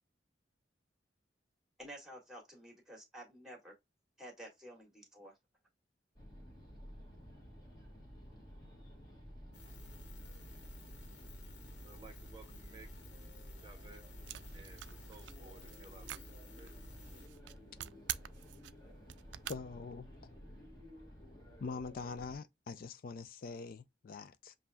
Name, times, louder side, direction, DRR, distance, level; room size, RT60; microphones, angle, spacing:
voice 1, 1.8-3.7 4.2-5.3, right 1 dB, 5° right, 1.7 m, -51 dB
sound 1, 6.2-22.4, equal, 25° left, 1.6 m, -53 dB
sound 2, 9.5-17.3, left 1 dB, 80° left, 1.3 m, -54 dB
voice 2, 11.8-12.9 13.6-14.0 14.5-16.2 16.6-16.8, right 3 dB, 25° right, 0.7 m, -57 dB
sound 3, 14.3-19.6, right 13 dB, 90° right, 0.3 m, -46 dB
voice 3, 19.5-20.1 21.6-24.6, left 4 dB, 55° left, 0.4 m, -44 dB
7.4 x 2.6 x 2.2 m
head